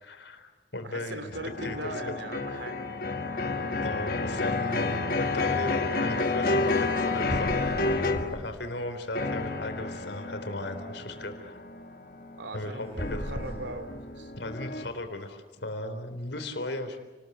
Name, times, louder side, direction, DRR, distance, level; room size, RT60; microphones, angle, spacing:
voice 1, 0.0-1.4 1.6-1.9 3.7-11.6 12.5-13.3 14.4-17.0, left 1 dB, 75° left, 7 dB, 3.7 m, -36 dB
voice 2, 0.8-3.0 12.4-14.3, right 2 dB, 80° right, 10 dB, 2.8 m, -40 dB
sound 1, 1.3-8.5 9.2-14.8, left 3 dB, 50° left, 1.8 m, -30 dB
sound 2, 7.3-8.6 8.9-10.0 12.8-14.4, equal, 35° right, 6.5 m, -38 dB
30.0 x 20.0 x 8.2 m, 1.4 s
head